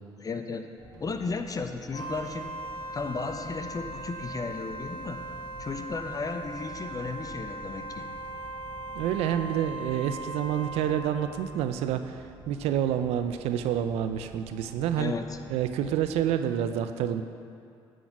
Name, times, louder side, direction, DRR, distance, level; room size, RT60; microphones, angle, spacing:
voice 1, 0.2-0.7 1.0-2.5 2.9-5.2 5.6-8.1 15.0-15.4, left 4 dB, 35° left, 7 dB, 0.7 m, -34 dB
sound 1, 0.8-16.3, right 2 dB, 40° right, 1.2 m, -49 dB
Wind instrument woodwind instrument, 1.9-11.2, right 2 dB, 50° left, 1.0 m, -39 dB
voice 2, 8.9-15.1 15.5-17.2, right 10 dB, 80° right, 9 dB, 0.4 m, -28 dB
9.1 x 4.2 x 5.9 m, 2.4 s
supercardioid pair, 60°, 10 cm